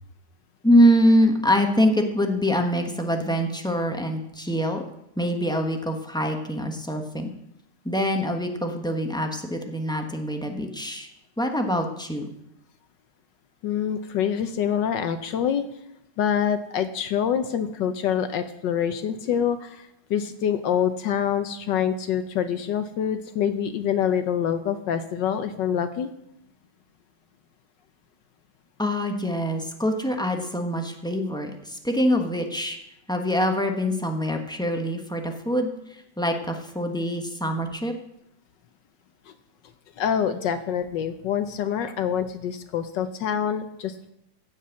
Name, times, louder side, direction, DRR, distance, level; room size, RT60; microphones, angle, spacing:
voice 1, 0.6-4.8 5.2-7.3 7.8-11.1 11.4-12.3 28.8-32.8 33.1-35.7 36.2-37.9, equal, 5° left, 3 dB, 1.0 m, -24 dB
voice 2, 13.6-15.6 16.2-26.1 39.3-39.4 40.0-44.1, left 8 dB, 75° left, 9 dB, 1.4 m, -26 dB
15.0 x 5.3 x 8.4 m, 0.79 s
omnidirectional pair, 2.1 m